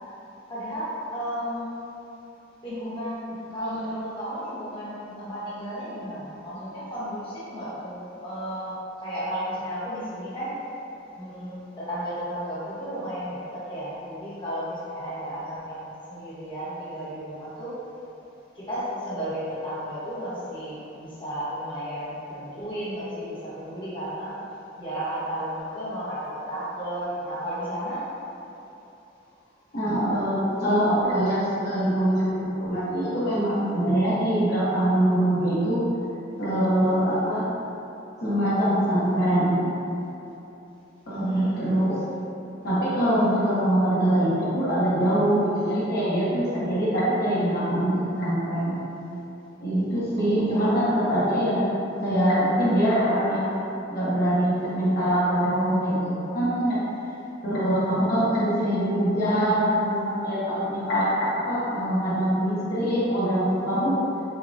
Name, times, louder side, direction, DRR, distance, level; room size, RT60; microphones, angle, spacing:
voice 1, 0.5-1.8 2.6-10.5 11.1-17.7 18.5-24.4 24.8-28.0 41.1-41.7 50.5-51.2, equal, 25° left, -11 dB, 1.1 m, -33 dB
voice 2, 29.7-35.8 36.4-37.5 38.2-39.6 41.1-42.0 42.6-48.8 49.6-51.6 52.0-53.6 53.9-56.8 57.4-64.0, right 1 dB, 55° left, -10 dB, 1.1 m, -23 dB
6.5 x 2.2 x 2.6 m, 3.0 s
head